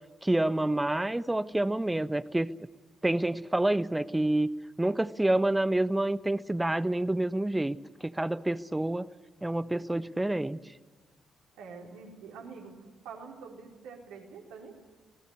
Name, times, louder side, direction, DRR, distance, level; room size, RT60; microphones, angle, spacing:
voice 1, 0.2-2.5 3.0-4.5 4.8-7.8 8.0-9.1 9.4-10.6, right 1 dB, 15° right, 16 dB, 1.1 m, -28 dB
voice 2, 11.5-12.8 13.0-14.7, right 5 dB, 70° right, 1 dB, 4.7 m, -46 dB
27.5 x 19.0 x 9.9 m, 1.3 s
hypercardioid pair, 45°, 0 cm